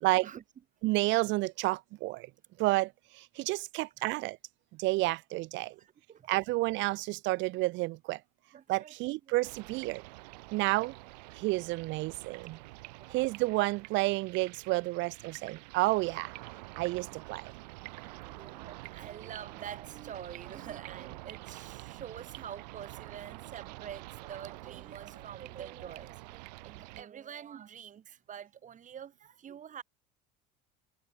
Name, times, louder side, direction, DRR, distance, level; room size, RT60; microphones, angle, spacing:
voice 1, 0.8-2.3 2.6-4.4 4.7-5.8 6.3-8.2 8.7-10.0 10.5-11.0 11.3-12.6 13.1-16.3 16.8-17.5, right 21 dB, 65° right, 1.1 m, -30 dB
voice 2, 5.8-6.3 8.5-8.9 13.0-13.2 18.1-29.8, right 9 dB, 40° right, 2.5 m, -46 dB
sound 1, 9.4-27.0, right 23 dB, 90° right, 5.3 m, -47 dB
supercardioid pair, 95°, 20 cm